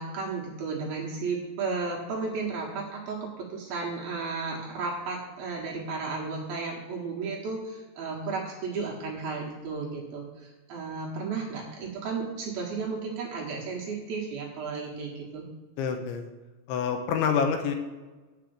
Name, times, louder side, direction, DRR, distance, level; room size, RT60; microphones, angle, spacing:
voice 1, 0.0-15.5, right 4 dB, 60° right, -3 dB, 2.8 m, -34 dB
voice 2, 15.8-16.3 16.7-17.8, left 6 dB, 80° left, 5 dB, 3.1 m, -27 dB
8.2 x 7.8 x 7.2 m, 1.2 s
omnidirectional pair, 5.6 m